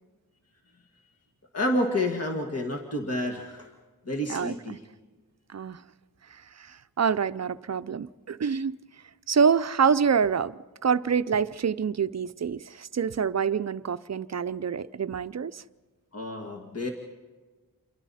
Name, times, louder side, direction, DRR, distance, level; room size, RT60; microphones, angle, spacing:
voice 1, 1.5-3.7 4.1-4.8 16.1-16.9, left 1 dB, 40° left, 2.0 m, -29 dB
voice 2, 4.3-4.8 5.5-5.8 6.6-8.8 9.3-10.5 10.8-15.6, right 6 dB, 45° right, 0.5 m, -26 dB
28.5 x 23.5 x 4.2 m
wide cardioid pair, 75°, 36 cm